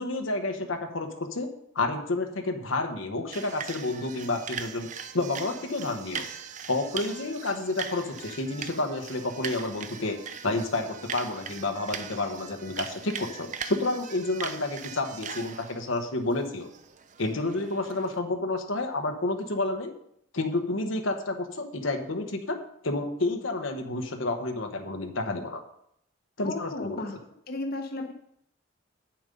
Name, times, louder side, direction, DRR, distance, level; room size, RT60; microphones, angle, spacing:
voice 1, 0.0-1.5 1.7-4.9 5.1-6.2 6.7-10.2 10.4-16.7 17.2-19.9 20.3-22.6 22.8-25.6 26.4-27.0, left 2 dB, 80° left, 4 dB, 1.2 m, -30 dB
sound 1, 3.3-18.2, right 7 dB, 40° right, 0.5 m, -40 dB
voice 2, 26.4-27.2 27.5-28.1, left 2 dB, 50° left, 3 dB, 1.0 m, -34 dB
8.8 x 7.3 x 5.3 m, 0.72 s
head